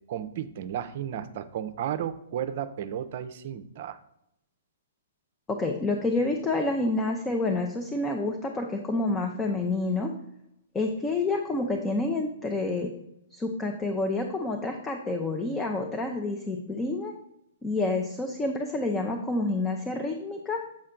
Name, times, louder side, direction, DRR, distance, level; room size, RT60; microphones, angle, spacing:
voice 1, 0.1-4.0, right 9 dB, 50° right, 11 dB, 0.5 m, -33 dB
voice 2, 5.5-10.1 10.7-12.9 13.3-17.1 17.6-20.6, left 2 dB, 15° left, 3 dB, 0.6 m, -28 dB
7.6 x 4.3 x 3.8 m, 0.79 s
hypercardioid pair, 125°, 0 cm